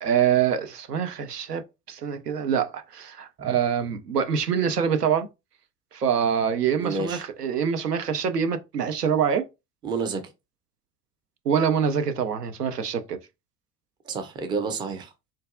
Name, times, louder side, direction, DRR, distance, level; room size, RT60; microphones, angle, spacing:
voice 1, 0.0-5.3 5.9-9.4 11.5-13.2, right 7 dB, 85° right, 0.5 m, -25 dB
voice 2, 6.8-7.2 9.8-10.2 14.1-15.1, right 4 dB, 10° right, 0.3 m, -29 dB
3.8 x 2.2 x 2.5 m
figure-of-eight pair, 65°, 46 cm